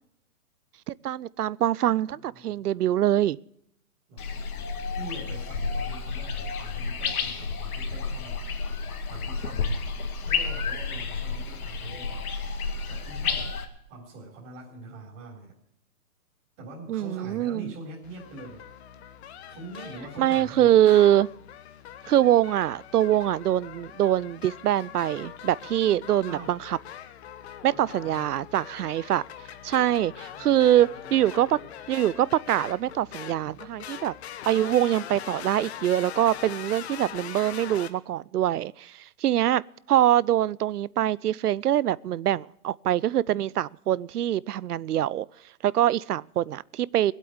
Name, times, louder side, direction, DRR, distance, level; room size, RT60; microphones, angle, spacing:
voice 1, 0.9-3.4 16.9-17.7 20.2-21.3 22.1-26.8 27.6-29.2 29.6-31.6 31.9-34.1 34.5-39.6 39.9-45.3 45.6-47.1, right 12 dB, 90° right, 0.6 m, -24 dB
voice 2, 2.1-2.6 4.1-4.4 4.9-8.5 9.1-9.7 10.2-12.3 12.9-13.6 13.9-15.5 16.6-18.6 18.9-19.0 19.5-20.7 26.3-26.5 27.7-28.2 30.3-31.6, right 2 dB, 30° right, 4.1 m, -43 dB
sound 1, 4.2-13.6, left 5 dB, 70° left, 2.0 m, -31 dB
sound 2, 18.0-37.9, left 10 dB, 45° left, 1.1 m, -42 dB
18.5 x 8.4 x 7.9 m
hypercardioid pair, 145°, 45 cm